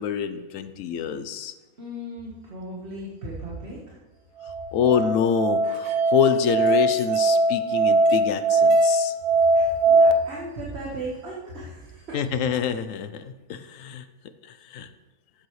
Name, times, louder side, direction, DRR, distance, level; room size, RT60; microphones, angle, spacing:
voice 1, 0.0-1.5 4.7-9.1 12.1-14.0 14.5-14.9, left 8 dB, 70° left, 11 dB, 0.9 m, -26 dB
voice 2, 1.8-4.0 9.5-12.2, right 1 dB, 45° right, -5 dB, 1.6 m, -36 dB
Musical instrument, 4.4-10.1, right 2 dB, 85° right, 1.1 m, -20 dB
12.5 x 7.9 x 3.2 m, 1.1 s
omnidirectional pair, 1.6 m